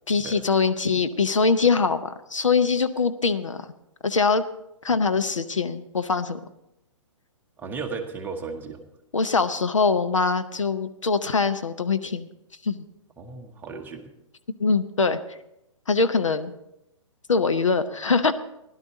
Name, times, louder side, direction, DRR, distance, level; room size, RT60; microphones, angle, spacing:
voice 1, 0.1-3.6 4.0-4.4 4.8-6.4 9.1-12.3 12.6-12.8 14.6-15.2 15.9-16.5 17.3-18.4, left 4 dB, 70° left, 10 dB, 0.8 m, -23 dB
voice 2, 7.6-8.8 13.2-14.1, right 4 dB, 10° right, 3 dB, 1.2 m, -35 dB
16.0 x 12.0 x 4.0 m, 0.87 s
figure-of-eight pair, 120°, 16 cm